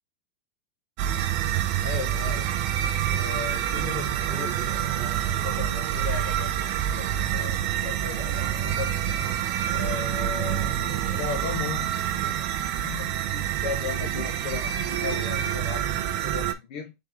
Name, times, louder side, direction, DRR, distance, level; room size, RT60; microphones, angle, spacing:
sound 1, 1.0-16.5, right 11 dB, 40° right, 0.5 m, -27 dB
voice 1, 1.8-2.5 2.8-5.0 5.3-9.0 9.7-12.0 12.4-17.0, left 7 dB, 55° left, 1.0 m, -37 dB
sound 2, 2.1-12.4, left 1 dB, 10° left, 1.7 m, -48 dB
4.4 x 3.6 x 3.0 m
supercardioid pair, 175°, 5 cm